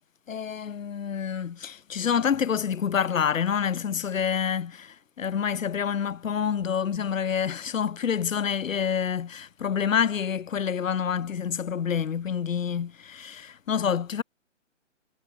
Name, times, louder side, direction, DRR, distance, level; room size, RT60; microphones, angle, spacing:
voice 1, 0.3-14.2, left 7 dB, 90° left, 0.7 m, -27 dB
hypercardioid pair, 150°, 38 cm